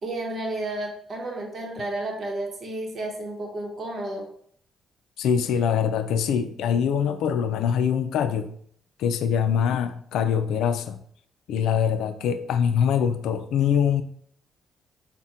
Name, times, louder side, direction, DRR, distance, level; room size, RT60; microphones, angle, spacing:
voice 1, 0.0-4.2, right 1 dB, 50° right, 0 dB, 0.9 m, -32 dB
voice 2, 5.2-8.5 9.0-11.0 11.5-14.0, left 8 dB, 85° left, 10 dB, 0.3 m, -23 dB
4.1 x 2.1 x 3.6 m, 0.62 s
cardioid pair, 90°, 0 cm